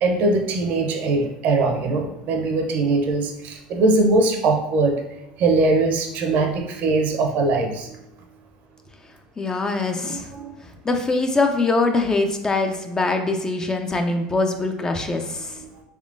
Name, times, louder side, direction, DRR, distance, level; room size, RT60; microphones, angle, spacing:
voice 1, 0.0-4.9 5.4-7.9 10.1-10.6, right 3 dB, 55° right, 3 dB, 0.6 m, -21 dB
voice 2, 9.4-10.3 10.6-15.6, left 3 dB, 20° left, 5 dB, 0.4 m, -23 dB
3.6 x 3.1 x 2.5 m, 0.88 s
supercardioid pair, 105°, 3 cm